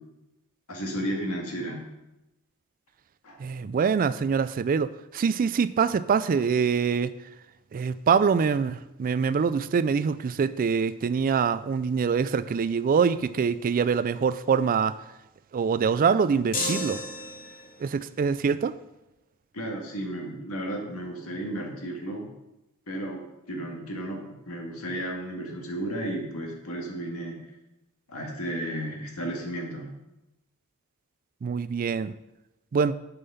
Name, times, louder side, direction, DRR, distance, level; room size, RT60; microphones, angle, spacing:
voice 1, 0.7-1.8 3.2-3.4 19.5-22.3 22.9-27.4 28.1-29.9, right 1 dB, 75° left, 1 dB, 2.1 m, -33 dB
voice 2, 3.4-7.3 7.7-15.0 15.5-17.0 17.8-18.7 31.4-32.1 32.7-33.0, right 6 dB, 40° right, 15 dB, 0.3 m, -24 dB
sound 1, 16.5-17.8, left 1 dB, 45° left, 2.1 m, -32 dB
9.9 x 5.5 x 5.6 m, 0.96 s
head